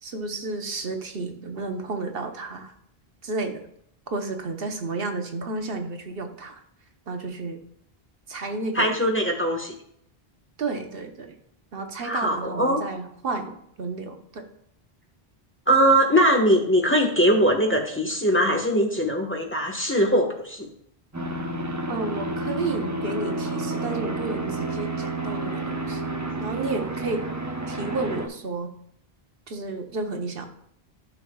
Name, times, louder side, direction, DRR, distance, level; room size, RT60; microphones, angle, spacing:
voice 1, 0.0-2.7 3.2-3.6 4.1-6.6 7.1-7.6 8.3-8.9 10.6-11.4 11.7-14.5 21.9-26.0 26.4-27.2 27.7-28.7 29.5-30.4, right 3 dB, 65° right, 5 dB, 1.1 m, -32 dB
voice 2, 8.7-9.7 12.0-12.8 15.7-20.7, equal, 10° left, 1 dB, 1.2 m, -21 dB
sound 1, 21.1-28.3, right 2 dB, 20° right, 0.7 m, -30 dB
12.5 x 6.2 x 2.3 m, 0.70 s
omnidirectional pair, 1.0 m